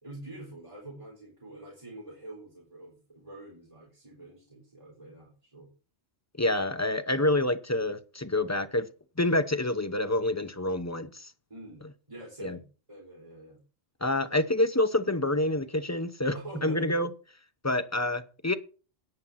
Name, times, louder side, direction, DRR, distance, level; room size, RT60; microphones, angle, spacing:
voice 1, 0.0-5.7 11.5-13.6 14.3-14.4 16.3-16.9, right 1 dB, 30° right, 3.9 m, -45 dB
voice 2, 6.4-8.9 9.2-11.3 12.4-12.6 14.0-17.1 17.6-18.6, left 1 dB, 15° left, 0.7 m, -27 dB
9.8 x 5.5 x 7.3 m
omnidirectional pair, 1.1 m